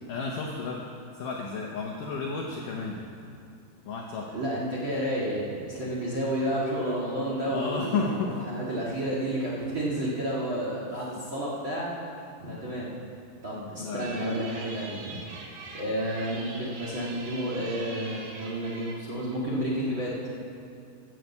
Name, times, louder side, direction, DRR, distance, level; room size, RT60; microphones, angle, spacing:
voice 1, 0.1-0.8 1.2-3.0 3.9-4.3 7.5-8.4 12.5-12.7 13.8-14.3, left 4 dB, 75° left, -1 dB, 1.9 m, -32 dB
voice 2, 4.3-12.1 12.4-12.9 13.4-15.2 15.7-20.2, right 1 dB, 45° right, -5 dB, 1.6 m, -31 dB
sound 1, 14.0-19.0, right 3 dB, 75° right, 3.6 m, -43 dB
14.0 x 7.5 x 8.0 m, 2.6 s
omnidirectional pair, 5.0 m